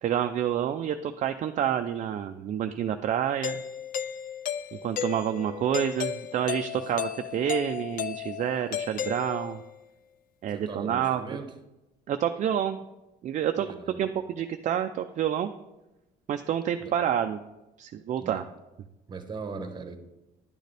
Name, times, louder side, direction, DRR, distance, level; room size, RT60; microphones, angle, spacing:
voice 1, 0.0-3.6 4.8-9.6 10.4-11.4 12.1-12.8 13.2-15.5 16.3-17.4 17.8-18.4, right 9 dB, 45° right, 7 dB, 0.4 m, -28 dB
Doorbell, 3.4-9.8, left 9 dB, 55° left, 0.4 m, -34 dB
voice 2, 10.5-11.5 13.6-14.1 16.8-16.9 18.2-18.5 19.1-20.0, right 4 dB, 25° right, 8 dB, 1.0 m, -39 dB
10.5 x 6.5 x 3.4 m, 1.0 s
cardioid pair, 110°, 17 cm